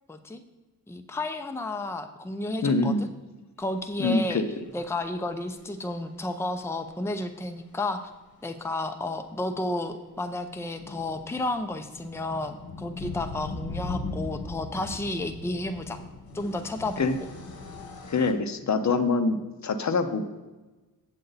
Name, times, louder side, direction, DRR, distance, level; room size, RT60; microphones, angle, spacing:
voice 1, 0.1-0.4 0.9-2.9 3.6-4.4 4.7-8.0 8.4-16.0 16.3-17.1, left 2 dB, 5° left, 8 dB, 0.6 m, -32 dB
voice 2, 2.6-3.1 4.0-4.5 17.0-17.2 18.1-20.2, left 3 dB, 50° left, 10 dB, 0.7 m, -25 dB
sound 1, 5.6-5.7 6.9-7.0 7.3-7.4 7.6-7.7 10.2-18.3, left 3 dB, 80° left, 1.2 m, -39 dB
8.2 x 7.8 x 4.0 m, 1.2 s
wide cardioid pair, 90°, 35 cm